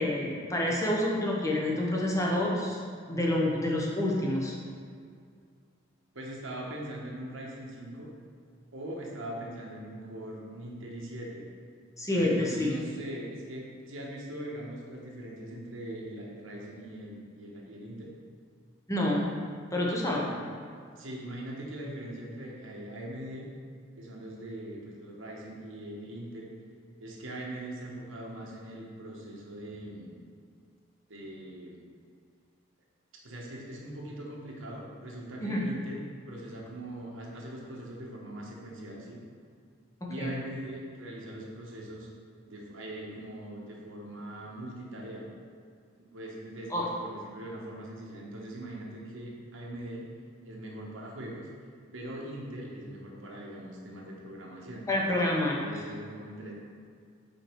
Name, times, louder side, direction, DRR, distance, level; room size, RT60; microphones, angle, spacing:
voice 1, 0.0-2.8 3.1-4.5 12.0-12.8 18.9-19.3 19.7-20.3 35.4-35.7 40.0-40.3 46.7-46.9 54.9-55.6, left 1 dB, 15° left, -3 dB, 0.9 m, -28 dB
voice 2, 6.1-8.1 8.7-11.4 12.1-18.1 20.1-20.5 21.0-23.5 24.0-26.5 27.0-30.2 31.1-31.8 33.2-39.2 40.1-42.1 42.5-45.3 46.0-50.0 50.4-51.5 51.9-55.2 55.5-56.5, right 1 dB, 80° right, -2 dB, 1.2 m, -41 dB
5.3 x 4.8 x 4.5 m, 2.1 s
head